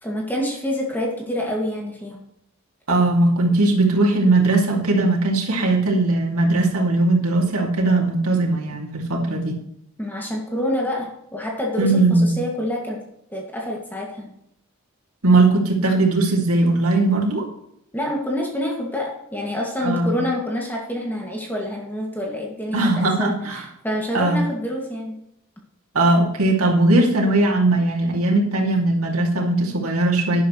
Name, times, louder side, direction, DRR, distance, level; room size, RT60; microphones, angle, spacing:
voice 1, 0.0-2.2 10.0-13.0 13.3-14.3 17.9-25.2, left 1 dB, 10° left, -1 dB, 2.2 m, -27 dB
voice 2, 2.9-9.6 11.8-12.4 15.2-17.5 19.8-20.2 22.7-23.6 24.1-24.4 25.9-30.4, right 2 dB, 85° right, -1 dB, 2.7 m, -19 dB
12.0 x 10.5 x 3.3 m, 0.78 s
head